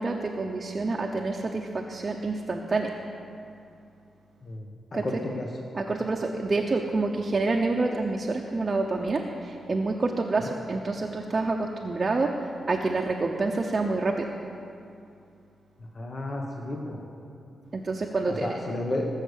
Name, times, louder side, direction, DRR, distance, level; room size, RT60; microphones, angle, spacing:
voice 1, 0.0-2.9 4.9-5.1 5.7-14.3 17.7-18.6, right 3 dB, 30° right, 1 dB, 0.9 m, -28 dB
voice 2, 4.9-5.5 15.9-17.0 18.3-19.1, left 2 dB, 35° left, 0 dB, 1.3 m, -32 dB
18.5 x 6.6 x 8.3 m, 2.6 s
wide cardioid pair, 125°, 0 cm